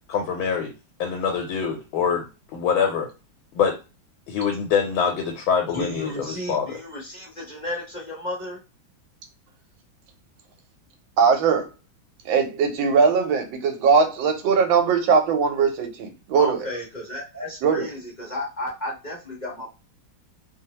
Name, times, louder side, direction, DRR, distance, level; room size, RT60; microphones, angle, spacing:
voice 1, 0.1-0.7 1.0-2.3 2.5-3.1 3.5-3.8 4.3-6.8, left 6 dB, 85° left, 2 dB, 1.5 m, -24 dB
voice 2, 5.7-8.6 16.4-19.7, left 1 dB, 50° left, -5 dB, 0.5 m, -33 dB
voice 3, 11.2-11.7 12.2-16.6 17.6-17.9, right 5 dB, 75° right, 5 dB, 1.4 m, -20 dB
3.3 x 2.0 x 2.8 m, 0.29 s
omnidirectional pair, 2.2 m